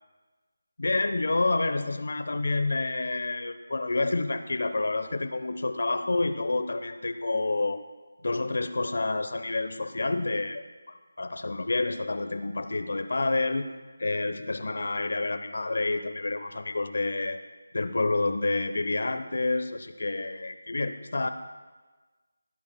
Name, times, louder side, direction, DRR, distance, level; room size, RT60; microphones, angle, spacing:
voice 1, 0.8-7.8 8.2-13.7 14.0-17.4 17.7-21.3, left 2 dB, 60° left, 10 dB, 0.8 m, -28 dB
16.0 x 10.0 x 2.2 m, 1.3 s
figure-of-eight pair, 165°, 0 cm